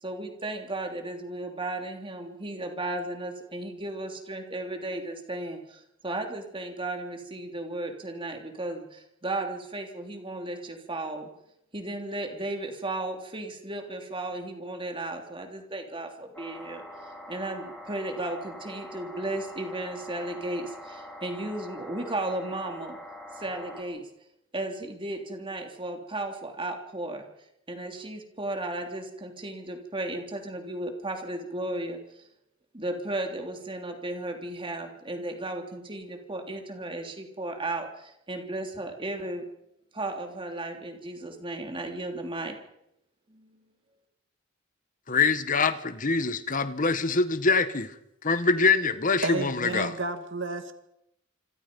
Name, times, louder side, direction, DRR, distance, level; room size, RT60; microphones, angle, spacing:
voice 1, 0.0-11.3 11.7-16.8 17.3-23.0 23.3-24.1 24.5-27.3 27.7-32.0 32.7-39.5 39.9-42.6 43.3-43.6, right 2 dB, 25° right, 4 dB, 3.2 m, -35 dB
sound 1, 16.3-23.8, left 1 dB, 5° left, 4.2 m, -44 dB
voice 2, 45.1-47.9 48.2-49.9, left 4 dB, 40° left, 12 dB, 1.4 m, -24 dB
voice 3, 49.2-50.7, right 3 dB, 65° right, 7 dB, 2.2 m, -31 dB
27.0 x 26.0 x 5.4 m, 0.81 s
head